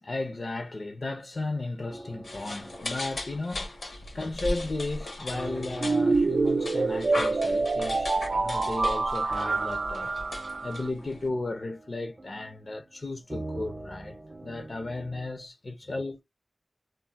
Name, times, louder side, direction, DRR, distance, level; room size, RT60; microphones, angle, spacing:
voice 1, 0.0-3.7 4.1-10.1 10.6-14.2 14.4-16.2, left 2 dB, 60° left, 0.4 m, -35 dB
sound 1, 1.9-15.3, right 1 dB, 35° right, 0.6 m, -45 dB
sound 2, 2.2-11.3, left 1 dB, 90° left, 0.9 m, -38 dB
sound 3, 5.8-10.9, right 3 dB, 85° right, 0.3 m, -26 dB
2.3 x 2.0 x 3.7 m
wide cardioid pair, 70°, 0 cm